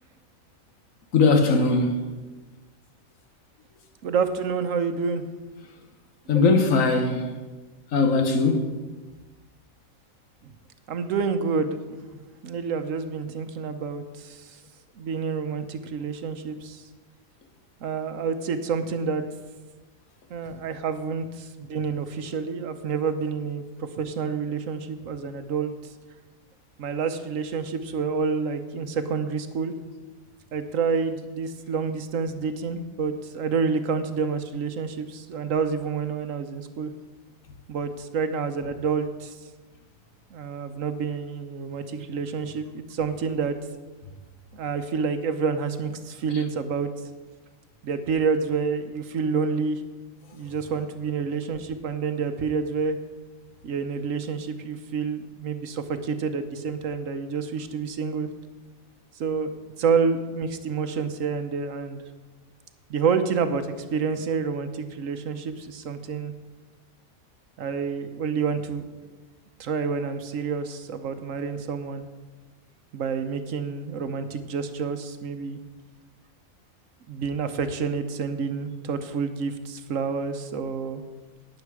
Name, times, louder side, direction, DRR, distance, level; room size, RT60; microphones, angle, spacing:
voice 1, 1.1-2.0 6.3-7.3 7.9-8.7, left 3 dB, 70° left, 1.4 m, -20 dB
voice 2, 4.0-5.2 10.4-10.5 10.9-12.1 12.4-14.6 15.0-16.9 17.8-19.2 20.3-25.7 26.8-29.7 30.5-36.9 37.7-39.4 40.3-43.6 44.5-46.9 47.8-49.8 50.3-53.0 53.6-58.3 59.2-62.0 62.9-66.3 67.6-69.1 69.6-72.1 72.9-75.6 77.1-81.0, right 5 dB, 70° right, 1.1 m, -28 dB
12.0 x 9.0 x 4.8 m
omnidirectional pair, 1.5 m